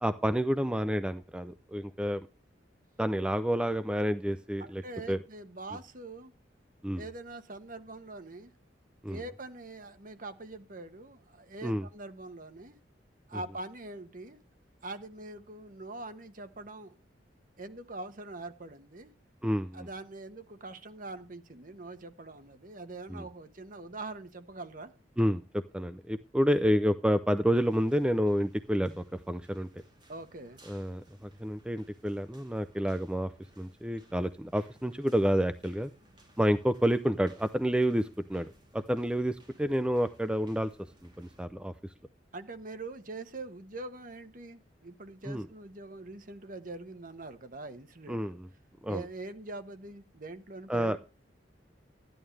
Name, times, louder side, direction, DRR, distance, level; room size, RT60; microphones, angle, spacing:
voice 1, 0.0-2.3 3.0-4.8 5.1-5.2 6.8-7.0 9.0-9.2 11.6-11.9 19.4-19.9 23.1-23.2 25.2-29.7 30.7-35.9 36.4-40.7 41.2-41.7 45.3-45.5 48.1-48.5 48.8-49.0 50.7-51.0, equal, 5° right, 11 dB, 0.4 m, -29 dB
voice 2, 4.6-6.3 7.0-8.5 9.1-12.8 13.3-14.4 14.8-17.0 17.6-19.1 19.7-24.9 30.1-30.6 42.3-48.2 48.9-51.0, right 2 dB, 50° right, 9 dB, 1.3 m, -43 dB
sound 1, 27.6-41.4, right 1 dB, 25° right, 3.8 m, -61 dB
13.0 x 11.0 x 3.3 m, 0.33 s
head